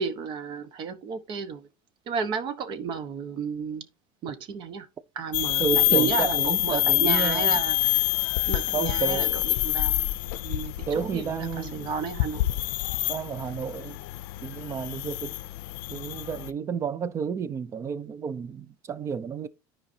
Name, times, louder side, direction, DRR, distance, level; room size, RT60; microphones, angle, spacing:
voice 1, 0.0-1.6 2.1-3.9 4.2-4.9 5.1-8.0 8.5-10.1 10.4-12.5, right 6 dB, 45° right, 1.1 m, -32 dB
sound 1, 5.3-16.5, left 20 dB, 80° left, 0.5 m, -27 dB
voice 2, 5.6-7.6 8.7-9.4 10.9-11.9 13.1-14.0 14.4-15.4 15.9-19.5, right 6 dB, 25° right, 0.5 m, -31 dB
13.0 x 4.9 x 2.7 m
cardioid pair, 140°, 11 cm